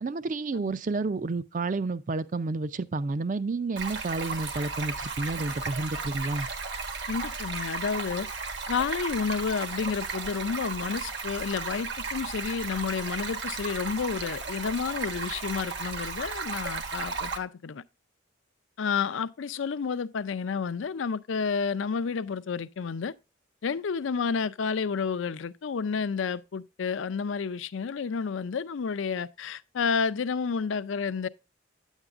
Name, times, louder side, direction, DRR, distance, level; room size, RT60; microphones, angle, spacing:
voice 1, 0.0-6.5, right 3 dB, 40° right, 0.4 m, -30 dB
Stream, 3.8-17.4, right 4 dB, 65° right, 1.2 m, -35 dB
voice 2, 7.1-8.3 8.7-17.8 18.8-23.1 23.6-31.3, left 5 dB, 80° left, 0.5 m, -30 dB
9.8 x 8.1 x 2.4 m
head